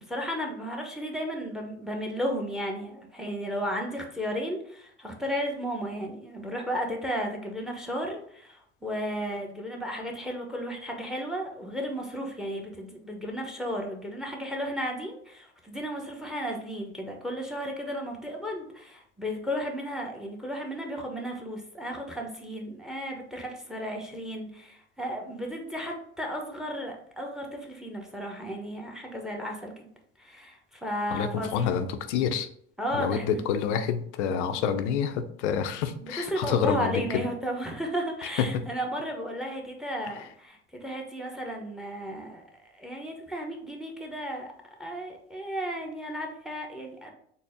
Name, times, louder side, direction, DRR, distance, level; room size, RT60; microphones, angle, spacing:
voice 1, 0.1-29.9 30.2-31.7 32.8-33.4 36.0-42.4 42.7-44.5 44.8-47.1, equal, ahead, 2 dB, 0.7 m, -34 dB
voice 2, 31.1-32.5 32.9-37.2 38.4-38.6 40.1-40.2, left 7 dB, 90° left, 9 dB, 0.5 m, -28 dB
4.0 x 2.0 x 3.5 m, 0.64 s
supercardioid pair, 95°, 33 cm